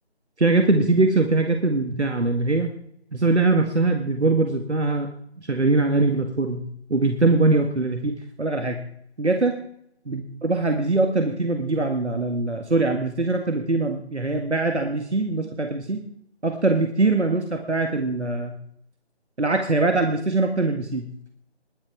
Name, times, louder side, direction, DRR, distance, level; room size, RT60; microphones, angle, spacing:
voice 1, 0.4-2.7 3.1-5.1 5.4-6.6 6.9-8.8 9.2-9.6 10.1-16.0 16.4-18.6 19.4-21.1, right 3 dB, 90° right, 5 dB, 1.9 m, -22 dB
21.0 x 7.4 x 4.7 m, 0.68 s
figure-of-eight pair, 165°, 33 cm